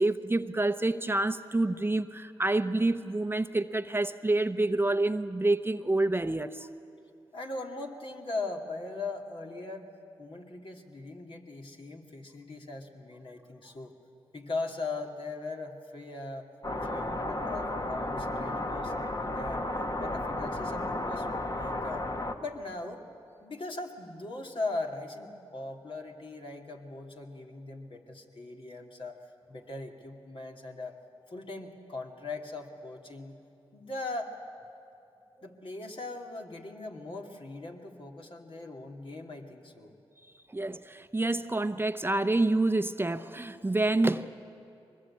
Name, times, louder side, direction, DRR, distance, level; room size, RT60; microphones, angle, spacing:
voice 1, 0.0-6.7 40.5-44.3, right 2 dB, 20° right, 10 dB, 0.8 m, -28 dB
voice 2, 7.3-9.9 10.2-13.9 14.3-16.5 16.8-19.7 20.0-22.1 22.4-23.0 23.4-29.2 29.5-31.0 31.3-33.4 33.7-34.3 35.4-39.9, left 2 dB, 55° left, 1 dB, 2.7 m, -39 dB
sound 1, 16.6-22.3, left 1 dB, 35° left, 1.6 m, -33 dB
23.0 x 20.5 x 8.7 m, 2.7 s
supercardioid pair, 40°, 11 cm